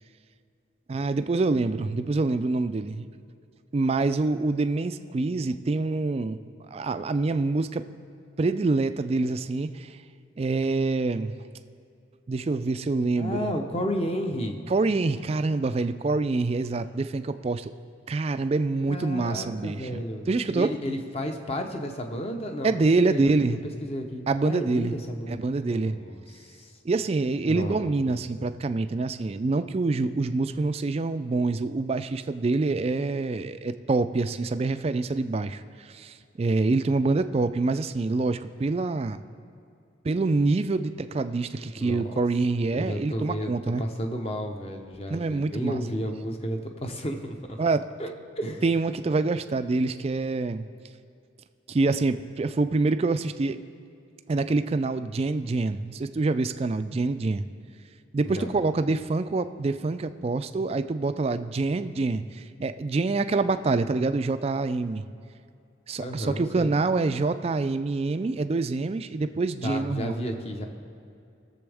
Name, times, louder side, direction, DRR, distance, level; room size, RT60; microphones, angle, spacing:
voice 1, 0.9-3.1 3.7-6.4 6.7-7.8 8.4-10.0 10.4-11.3 12.3-13.5 14.7-17.7 18.1-20.0 20.3-20.7 22.6-23.6 24.3-24.9 25.3-26.0 26.9-39.2 40.0-43.8 45.1-45.8 47.6-47.9 48.6-50.7 51.7-53.6 54.3-57.4 58.1-65.1 65.9-70.2, right 3 dB, 30° right, 11 dB, 0.3 m, -26 dB
voice 2, 13.2-14.6 18.9-23.3 23.8-26.7 27.5-28.1 41.8-42.1 42.7-43.5 43.8-47.6 48.0-48.6 58.2-58.5 66.0-66.7 69.6-70.7, equal, 30° left, 4 dB, 0.8 m, -32 dB
19.0 x 7.0 x 3.5 m, 2.4 s
head